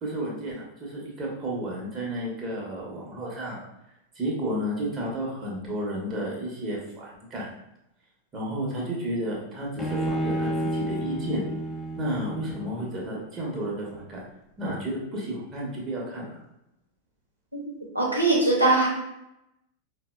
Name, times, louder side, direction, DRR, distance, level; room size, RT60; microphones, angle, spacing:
voice 1, 0.0-3.6 4.2-7.5 8.3-11.4 12.0-14.2 14.6-16.3, right 1 dB, 25° right, -3 dB, 0.8 m, -32 dB
Bowed string instrument, 9.8-13.1, right 1 dB, 10° left, 0.5 m, -30 dB
voice 2, 17.9-18.9, right 2 dB, 90° right, -4 dB, 0.7 m, -21 dB
4.0 x 2.1 x 2.3 m, 0.85 s
figure-of-eight pair, 90°, 0 cm